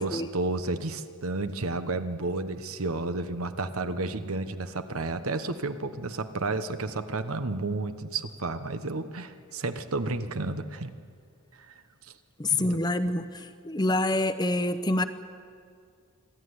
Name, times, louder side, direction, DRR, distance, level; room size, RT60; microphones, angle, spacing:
voice 1, 0.0-10.9 11.7-11.8 12.5-12.6, right 3 dB, 85° right, 10 dB, 1.2 m, -31 dB
voice 2, 12.4-15.0, left 2 dB, 20° left, 11 dB, 0.7 m, -27 dB
25.5 x 13.5 x 9.7 m, 2.2 s
head